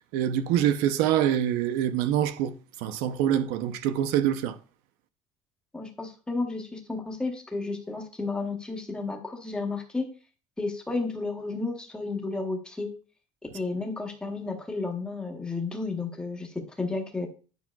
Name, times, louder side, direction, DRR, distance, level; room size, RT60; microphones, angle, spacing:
voice 1, 0.0-2.5 2.8-4.6, right 10 dB, 75° right, 0.6 m, -25 dB
voice 2, 5.7-10.1 10.6-12.9 13.5-17.3, left 3 dB, 5° left, 0.8 m, -32 dB
9.4 x 5.9 x 2.3 m
cardioid pair, 180°, 15 cm